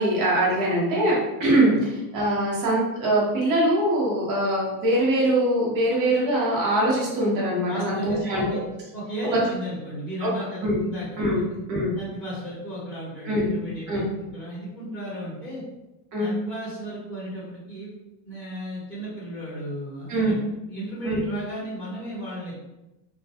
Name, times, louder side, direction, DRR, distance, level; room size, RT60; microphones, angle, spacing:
voice 1, 0.0-8.4 10.2-10.3 10.6-10.8 11.2-11.4 11.7-11.9 13.3-13.5 13.9-14.0 16.1-16.3 20.1-20.3 21.0-21.2, right 1 dB, 45° right, -5 dB, 0.9 m, -23 dB
voice 2, 7.7-8.6 8.9-11.4 11.9-15.6 16.2-17.9 18.2-20.4 20.7-22.5, equal, ahead, -14 dB, 0.9 m, -34 dB
2.2 x 2.1 x 2.8 m, 0.96 s
cardioid pair, 160°, 45 cm